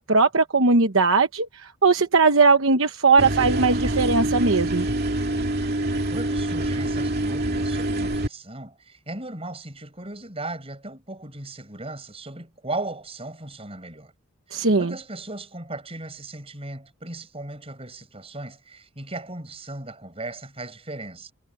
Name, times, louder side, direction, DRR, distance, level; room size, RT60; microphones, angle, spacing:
voice 1, 0.0-4.9 14.5-14.9, right 4 dB, 65° right, 1.1 m, -19 dB
sound 1, 3.2-8.3, right 1 dB, 45° right, 2.7 m, -25 dB
voice 2, 6.1-14.1 14.5-21.3, right 2 dB, 25° right, 6.3 m, -37 dB
head